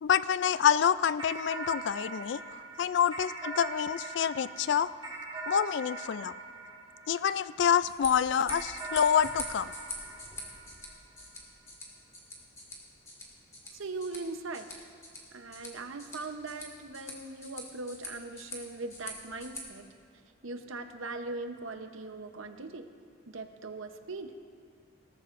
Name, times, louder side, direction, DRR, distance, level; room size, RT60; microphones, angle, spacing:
voice 1, 0.0-2.4 2.8-4.9 5.5-6.3 7.1-9.7, left 8 dB, 60° left, 16 dB, 0.3 m, -27 dB
sound 1, 1.2-7.8 8.5-11.2, right 3 dB, 25° right, 1.7 m, -42 dB
sound 2, 7.7-19.6, left 1 dB, 15° left, 1.7 m, -45 dB
voice 2, 13.7-14.9 15.3-19.9 20.4-22.9 23.3-24.3, right 3 dB, 85° right, 7 dB, 0.8 m, -40 dB
18.5 x 13.5 x 2.5 m, 2.2 s
head